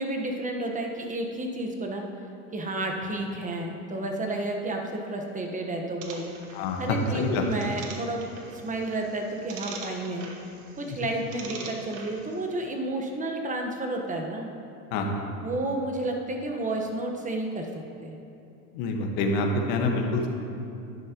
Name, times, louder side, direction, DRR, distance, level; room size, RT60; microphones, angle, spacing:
voice 1, 0.0-2.0 2.5-6.3 6.8-8.2 8.6-10.2 10.8-14.5 15.4-17.7 18.0-18.2, right 2 dB, 15° right, 2 dB, 1.2 m, -31 dB
sound 1, 6.0-12.5, right 4 dB, 45° right, 1.5 m, -43 dB
voice 2, 6.5-7.4 10.9-11.1 14.9-15.2 18.7-20.3, left 2 dB, 55° left, 2 dB, 1.5 m, -27 dB
11.0 x 11.0 x 3.0 m, 2.7 s
hypercardioid pair, 100°, 44 cm